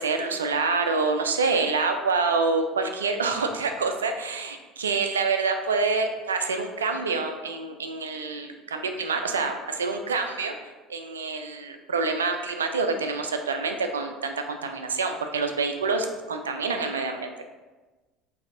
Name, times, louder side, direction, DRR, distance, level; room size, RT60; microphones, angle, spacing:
voice 1, 0.0-17.3, right 4 dB, 85° right, 6 dB, 0.3 m, -27 dB
5.7 x 2.7 x 2.5 m, 1.2 s
hypercardioid pair, 65°, 0 cm